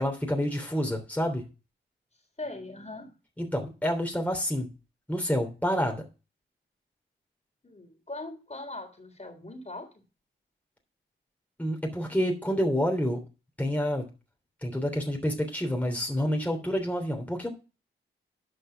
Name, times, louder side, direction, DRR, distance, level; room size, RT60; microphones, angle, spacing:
voice 1, 0.0-1.4 3.4-4.7 5.1-6.0 11.6-13.2 13.6-14.0 14.6-17.5, equal, 5° left, 2 dB, 3.3 m, -28 dB
voice 2, 2.4-3.1 7.6-10.0, left 2 dB, 35° left, 4 dB, 3.7 m, -40 dB
11.5 x 5.3 x 5.8 m, 0.31 s
cardioid pair, 45°, 21 cm